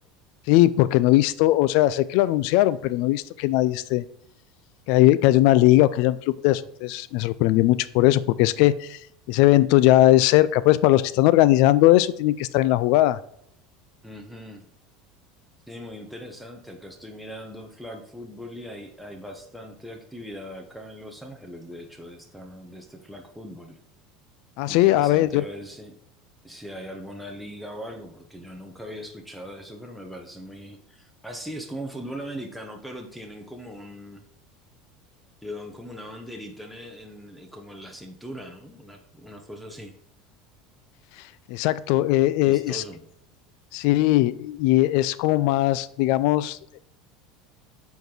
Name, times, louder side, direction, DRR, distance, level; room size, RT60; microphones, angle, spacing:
voice 1, 0.5-4.0 4.9-6.2 6.4-9.0 9.3-13.2 24.6-25.4 41.5-42.8 43.7-46.6, left 16 dB, 65° left, 17 dB, 0.3 m, -19 dB
voice 2, 14.0-14.7 15.7-23.8 24.7-25.9 26.4-34.2 35.4-39.9 42.5-43.1, equal, ahead, 4 dB, 0.9 m, -40 dB
8.1 x 4.6 x 3.9 m, 0.72 s
supercardioid pair, 135°, 0 cm